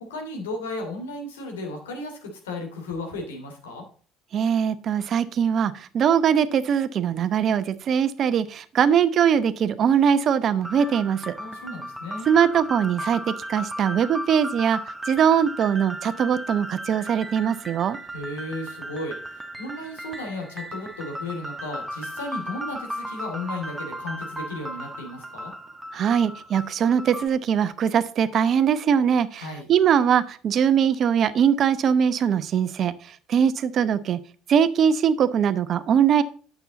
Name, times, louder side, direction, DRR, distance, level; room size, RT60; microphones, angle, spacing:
voice 1, 0.1-3.8 11.4-12.3 18.1-25.5 29.3-29.7, left 2 dB, 85° left, 2 dB, 2.8 m, -34 dB
voice 2, 4.3-11.3 12.3-14.8 15.1-18.0 25.9-32.9 33.3-34.2 34.5-36.2, right 8 dB, 50° right, 14 dB, 0.8 m, -21 dB
sound 1, 10.6-27.3, equal, 15° right, 1.5 m, -36 dB
9.2 x 7.2 x 4.0 m, 0.42 s
hypercardioid pair, 65°, 0 cm